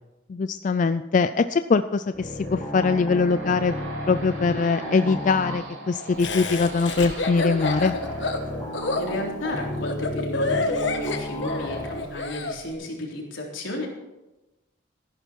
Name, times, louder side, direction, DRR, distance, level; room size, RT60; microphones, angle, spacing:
voice 1, 0.3-3.7 4.1-8.0, left 4 dB, 40° left, 11 dB, 0.3 m, -22 dB
sound 1, 1.9-9.3, right 2 dB, 90° right, 3.7 m, -41 dB
sound 2, 2.1-5.9 7.6-12.0, left 1 dB, 25° left, 3.9 m, -33 dB
Laughter, 6.2-12.6, left 3 dB, 65° left, 1.4 m, -28 dB
voice 2, 9.0-13.9, left 1 dB, 80° left, -1 dB, 3.8 m, -33 dB
14.5 x 11.0 x 4.6 m, 1.0 s
head